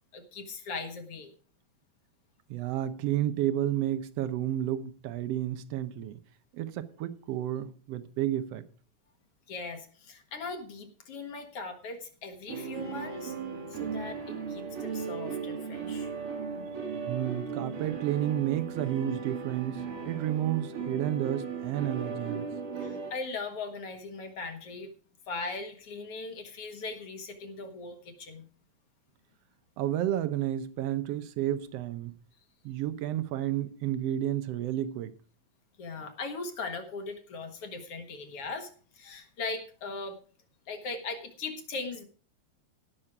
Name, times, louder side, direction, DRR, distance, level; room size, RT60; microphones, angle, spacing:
voice 1, 0.1-1.3 9.5-13.3 13.7-16.1 22.8-24.9 25.3-28.5 35.8-38.7 38.9-40.2 40.7-42.1, left 3 dB, 55° left, 2.3 m, -39 dB
voice 2, 2.5-6.2 6.5-8.6 17.1-22.5 29.8-32.2 32.6-35.1, right 12 dB, 65° right, 1.7 m, -31 dB
sound 1, 12.5-23.1, right 6 dB, 85° right, 4.4 m, -36 dB
18.0 x 6.3 x 4.9 m
omnidirectional pair, 3.4 m